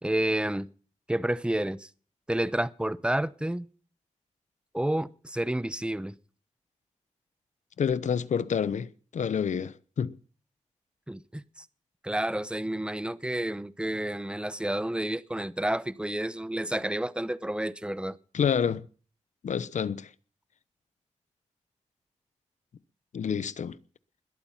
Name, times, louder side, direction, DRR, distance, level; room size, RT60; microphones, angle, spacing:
voice 1, 0.0-0.7 1.1-1.9 2.3-3.7 4.7-6.1 11.1-11.6 12.0-18.2, right 1 dB, 10° right, 0.9 m, -30 dB
voice 2, 7.8-10.1 18.3-18.8 19.4-20.1 23.1-23.8, left 7 dB, 75° left, 0.8 m, -28 dB
21.0 x 8.9 x 5.7 m
cardioid pair, 60°, 12 cm